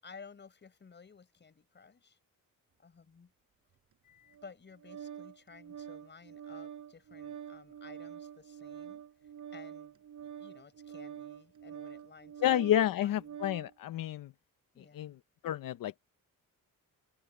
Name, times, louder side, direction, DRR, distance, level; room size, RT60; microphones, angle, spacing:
voice 1, 0.0-2.2 2.8-3.3 4.4-9.0 9.5-13.4 14.7-15.2, left 5 dB, 30° left, 6.1 m, -55 dB
Organ, 4.3-13.7, right 9 dB, 60° right, 5.6 m, -46 dB
voice 2, 12.4-14.3 14.9-15.1 15.4-16.0, left 12 dB, 75° left, 0.8 m, -30 dB
open air
wide cardioid pair, 165°, 34 cm